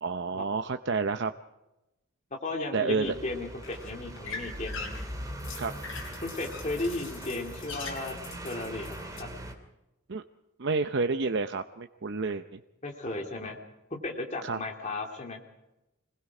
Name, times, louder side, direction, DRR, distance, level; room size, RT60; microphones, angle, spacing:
voice 1, 0.0-1.3 2.7-3.1 5.5-5.7 10.1-10.2 10.6-12.6 14.4-14.6, right 4 dB, 60° right, 8 dB, 0.7 m, -29 dB
voice 2, 2.4-4.9 6.2-9.3 12.8-13.6 13.9-15.4, left 2 dB, 35° left, 1 dB, 2.9 m, -35 dB
sound 1, 3.0-9.2, left 4 dB, 65° left, 5.4 m, -43 dB
sound 2, 3.0-9.5, right 1 dB, 15° right, 2.8 m, -41 dB
26.5 x 20.5 x 4.9 m, 0.95 s
head